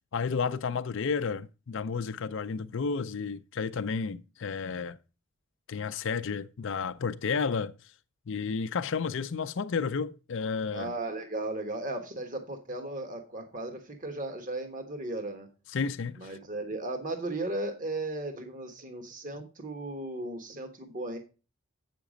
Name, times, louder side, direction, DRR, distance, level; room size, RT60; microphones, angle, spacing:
voice 1, 0.1-5.0 5.7-7.7 8.3-10.9 15.7-16.4, left 5 dB, 60° left, 0.4 m, -32 dB
voice 2, 10.7-15.5 16.2-21.2, right 2 dB, 35° right, 1.3 m, -36 dB
8.3 x 5.8 x 5.0 m
head